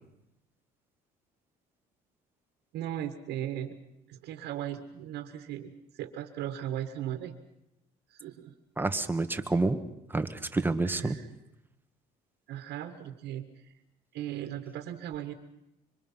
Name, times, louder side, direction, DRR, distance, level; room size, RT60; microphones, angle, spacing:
voice 1, 2.7-3.8 4.1-7.3 8.1-8.5 10.8-11.3 12.5-13.7 14.1-15.3, right 11 dB, 80° right, 6 dB, 1.9 m, -37 dB
voice 2, 8.8-9.8 10.1-11.2, right 2 dB, 10° right, 9 dB, 1.5 m, -28 dB
25.5 x 25.0 x 5.8 m, 0.87 s
cardioid pair, 110°, 17 cm